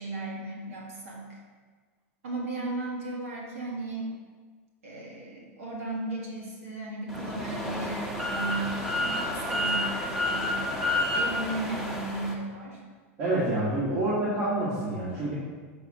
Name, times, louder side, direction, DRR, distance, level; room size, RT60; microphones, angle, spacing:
voice 1, 0.0-1.4 2.2-4.1 4.8-10.6 11.1-12.8, right 2 dB, 80° right, -2 dB, 1.5 m, -35 dB
sound 1, 7.1-12.3, left 1 dB, 5° right, 1.0 m, -30 dB
voice 2, 13.2-15.3, right 1 dB, 50° right, -9 dB, 2.1 m, -27 dB
6.9 x 4.2 x 4.9 m, 1.5 s
hypercardioid pair, 110°, 8 cm